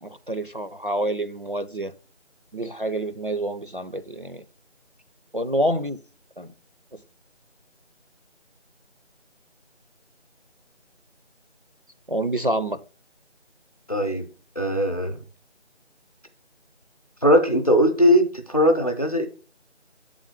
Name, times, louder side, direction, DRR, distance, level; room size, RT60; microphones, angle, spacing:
voice 1, 0.0-1.9 2.5-4.5 5.3-6.0 6.4-6.5 6.9-7.0 12.1-12.8, right 1 dB, 50° right, 0.4 m, -27 dB
voice 2, 13.9-14.3 14.6-15.2 17.2-19.3, equal, 30° left, 0.7 m, -19 dB
8.0 x 3.8 x 4.7 m
figure-of-eight pair, 170°, 35 cm